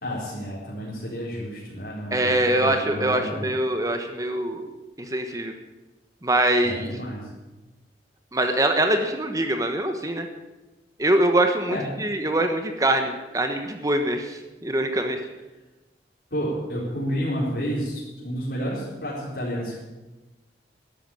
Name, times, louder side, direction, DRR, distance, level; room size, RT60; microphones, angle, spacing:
voice 1, 0.0-3.5 6.6-7.3 11.7-11.8 16.3-19.7, equal, 65° left, -8 dB, 4.5 m, -30 dB
voice 2, 2.1-4.7 5.0-5.5 6.2-6.9 8.3-10.3 11.0-15.2, right 1 dB, 20° right, 6 dB, 1.2 m, -23 dB
13.0 x 11.5 x 9.1 m, 1.1 s
head